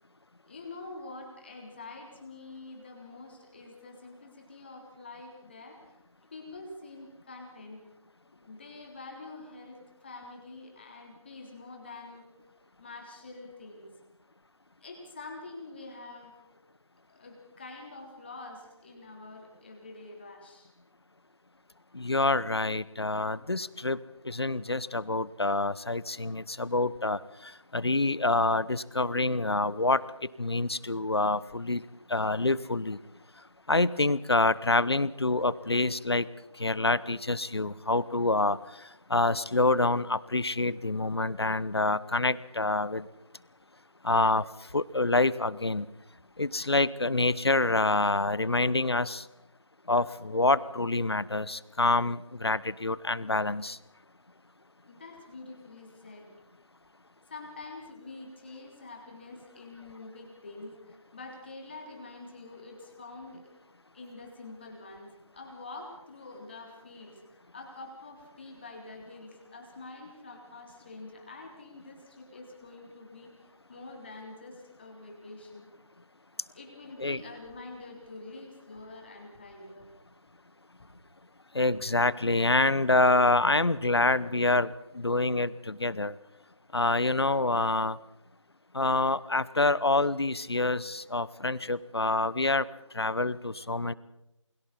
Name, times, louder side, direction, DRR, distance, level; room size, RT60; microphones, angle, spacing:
voice 1, 0.5-6.0 6.3-7.8 8.3-12.3 12.8-13.9 14.8-16.3 17.1-20.7 54.9-56.3 57.3-63.4 63.9-73.3 73.7-75.7 76.5-79.9, left 3 dB, 20° left, 1 dB, 3.6 m, -46 dB
voice 2, 21.9-24.0 24.2-27.2 27.7-30.0 30.4-31.8 32.1-33.0 33.7-36.3 36.6-38.6 39.1-43.1 44.0-44.4 44.7-45.9 46.4-49.2 49.9-53.8 77.0-77.2 81.5-86.1 86.7-88.0 88.7-92.6 92.9-93.9, left 2 dB, 50° left, 19 dB, 1.0 m, -26 dB
28.5 x 24.0 x 4.2 m, 0.89 s
figure-of-eight pair, 170°, 17 cm